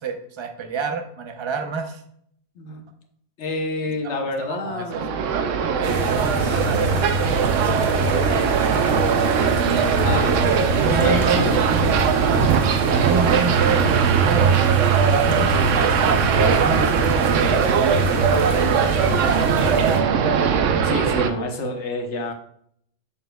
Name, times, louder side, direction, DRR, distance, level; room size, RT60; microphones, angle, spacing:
voice 1, 0.0-2.0 4.0-5.0 5.7-8.8 9.8-11.5 12.2-12.4 12.8-15.6 16.0-19.3, right 5 dB, 30° right, 5 dB, 0.6 m, -29 dB
voice 2, 3.4-5.1 10.0-10.3 10.8-11.5 13.7-13.9 16.4-16.6 20.8-22.3, left 2 dB, 70° left, 4 dB, 1.2 m, -28 dB
sound 1, 4.9-21.3, right 7 dB, 90° right, 1.0 m, -20 dB
sound 2, 5.8-20.0, right 1 dB, 70° right, 1.2 m, -26 dB
6.8 x 6.6 x 2.2 m, 0.68 s
omnidirectional pair, 1.2 m